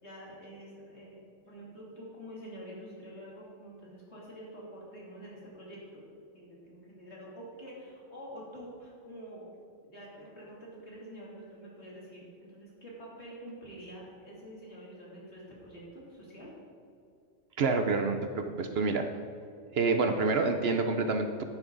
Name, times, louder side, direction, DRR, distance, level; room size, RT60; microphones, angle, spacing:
voice 1, 0.0-6.0 6.3-9.5 9.8-16.5, equal, 60° left, -5 dB, 3.2 m, -47 dB
voice 2, 17.6-19.1 19.7-21.4, right 4 dB, 60° right, 6 dB, 0.8 m, -28 dB
11.0 x 9.6 x 3.9 m, 2.5 s
omnidirectional pair, 1.3 m